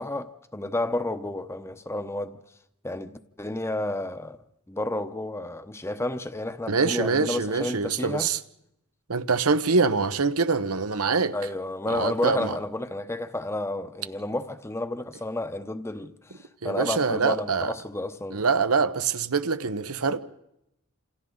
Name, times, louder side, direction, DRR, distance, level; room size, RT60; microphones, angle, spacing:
voice 1, 0.0-2.4 2.8-4.4 4.7-8.3 11.3-18.4, left 1 dB, 10° left, 0.9 m, -31 dB
voice 2, 6.7-8.4 9.1-11.3 11.9-12.6 16.6-17.7 18.3-20.2, right 4 dB, 80° right, 1.1 m, -24 dB
28.0 x 27.5 x 4.0 m
head